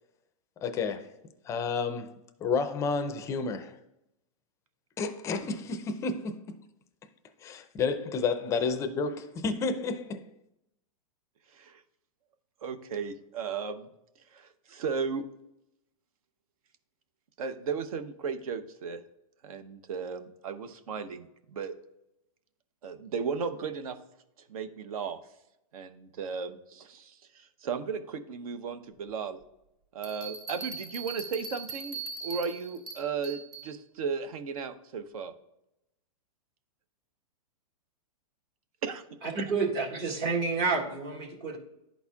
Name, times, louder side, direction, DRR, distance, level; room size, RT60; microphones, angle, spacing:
voice 1, 0.6-1.2 1.4-2.1 2.4-3.8 5.0-6.6 7.4-10.3, left 4 dB, 15° left, 0.4 m, -31 dB
voice 2, 12.6-13.9 14.3-15.2 17.4-19.0 19.4-21.7 22.8-24.0 24.5-25.2 25.7-29.4 29.9-35.3 38.8-39.0, right 5 dB, 70° right, 0.9 m, -35 dB
Bell, 30.0-33.7, right 5 dB, 25° right, 2.4 m, -40 dB
voice 3, 39.3-41.6, right 4 dB, 45° right, 1.8 m, -29 dB
11.5 x 4.2 x 2.3 m
hypercardioid pair, 150°, 19 cm